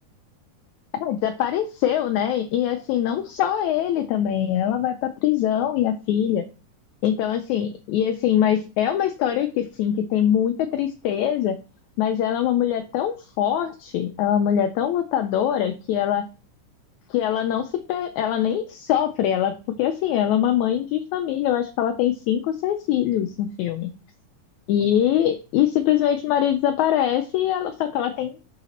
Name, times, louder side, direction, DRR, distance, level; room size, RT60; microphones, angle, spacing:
voice 1, 0.9-6.4 7.0-11.6 12.0-16.3 17.1-23.9 24.7-28.3, left 10 dB, 80° left, 6 dB, 1.8 m, -23 dB
6.5 x 4.0 x 4.1 m, 0.32 s
omnidirectional pair, 3.5 m